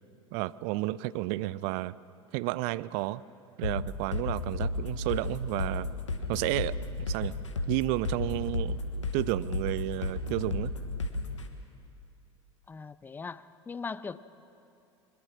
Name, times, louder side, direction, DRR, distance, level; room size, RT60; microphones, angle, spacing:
voice 1, 0.3-1.9 2.3-3.2 3.6-5.9 6.3-7.3 7.7-8.8 9.1-10.7, right 18 dB, 45° right, 19 dB, 0.5 m, -31 dB
sound 1, 3.6-11.5, left 3 dB, 75° left, 1.6 m, -33 dB
voice 2, 12.7-14.2, left 5 dB, 10° left, 16 dB, 0.5 m, -39 dB
22.0 x 21.5 x 6.2 m, 2.6 s
figure-of-eight pair, 80°, 16 cm